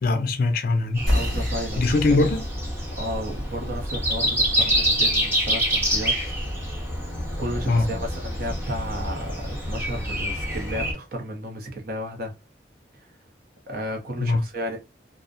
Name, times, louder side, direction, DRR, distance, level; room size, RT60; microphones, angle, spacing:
voice 1, 0.0-1.0 1.8-2.4 7.7-7.9 14.2-14.4, left 3 dB, 50° left, 0.4 m, -21 dB
Breathing, 0.9-10.9, equal, 15° right, 0.6 m, -26 dB
voice 2, 1.1-2.2 3.0-6.4 7.4-12.3 13.7-14.8, equal, 55° right, 0.7 m, -33 dB
sound 1, 1.1-6.2, left 1 dB, 90° right, 1.2 m, -31 dB
2.5 x 2.0 x 2.5 m
head